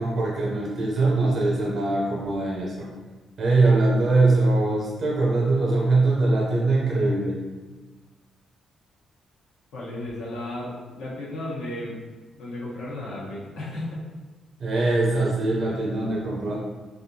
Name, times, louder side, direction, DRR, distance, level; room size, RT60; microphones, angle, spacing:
voice 1, 0.0-2.9 3.4-7.4 14.6-16.6, right 2 dB, 45° right, -4 dB, 0.5 m, -22 dB
voice 2, 9.7-12.0 12.4-14.0, left 1 dB, 80° left, -6 dB, 1.0 m, -34 dB
3.3 x 2.5 x 2.7 m, 1.3 s
cardioid pair, 160°, 0 cm